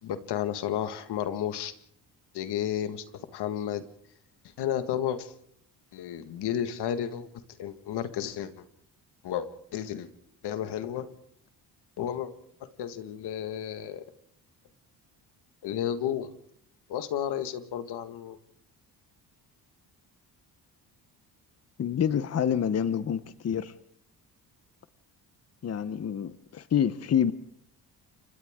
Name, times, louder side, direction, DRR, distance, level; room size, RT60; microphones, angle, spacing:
voice 1, 0.0-1.7 2.3-3.0 3.3-3.8 4.6-5.3 5.9-7.3 7.6-8.5 9.2-10.1 10.4-11.1 12.0-12.3 12.8-14.0 15.6-16.3 16.9-18.4, left 10 dB, 75° left, 10 dB, 1.7 m, -32 dB
voice 2, 21.8-23.7 25.6-27.3, left 8 dB, 40° left, 14 dB, 0.9 m, -27 dB
29.5 x 25.5 x 3.7 m, 0.67 s
cardioid pair, 95°, 40 cm